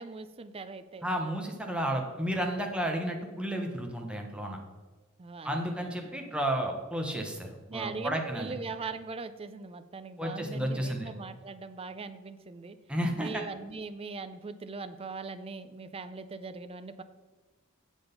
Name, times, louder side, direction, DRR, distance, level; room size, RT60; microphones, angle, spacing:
voice 1, 0.0-1.1 5.2-6.2 7.7-12.8 13.2-17.0, right 4 dB, 30° right, 12 dB, 0.5 m, -41 dB
voice 2, 1.0-4.6 5.4-8.5 10.2-11.1 12.9-13.4, right 1 dB, 5° right, 2 dB, 1.1 m, -32 dB
7.8 x 6.1 x 5.3 m, 1.2 s
head